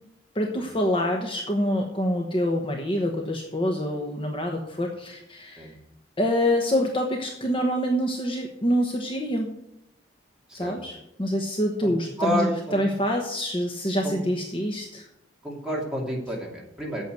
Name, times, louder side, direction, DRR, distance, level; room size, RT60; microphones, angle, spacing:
voice 1, 0.3-5.7 6.2-9.5 10.5-15.0, equal, 30° left, 1 dB, 1.1 m, -26 dB
voice 2, 11.8-12.8 14.0-14.2 15.4-17.0, equal, 5° right, -3 dB, 2.7 m, -30 dB
8.4 x 7.8 x 8.2 m, 0.85 s
head